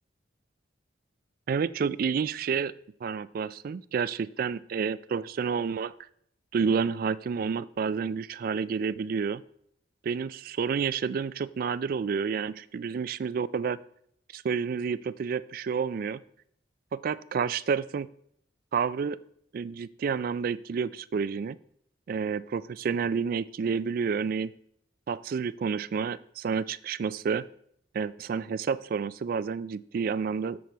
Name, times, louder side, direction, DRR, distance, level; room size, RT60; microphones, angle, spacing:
voice 1, 1.5-2.7 3.0-5.9 6.5-9.4 10.0-13.8 14.3-16.2 16.9-18.1 18.7-19.2 19.5-21.6 22.1-24.5 25.1-27.5 27.9-30.6, right 6 dB, 50° right, 18 dB, 0.3 m, -29 dB
7.8 x 6.7 x 4.5 m, 0.69 s
head